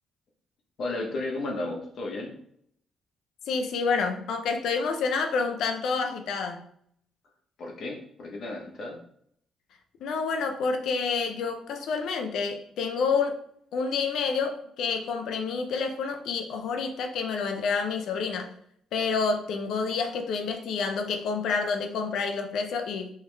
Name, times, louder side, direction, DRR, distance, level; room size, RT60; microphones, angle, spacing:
voice 1, 0.8-2.3 7.6-9.0, left 2 dB, 60° left, 0 dB, 1.1 m, -33 dB
voice 2, 3.5-6.6 10.0-13.4 13.7-18.5 18.9-23.1, left 5 dB, 75° left, 5 dB, 0.6 m, -28 dB
3.4 x 3.2 x 3.4 m, 0.66 s
cardioid pair, 90°, 0 cm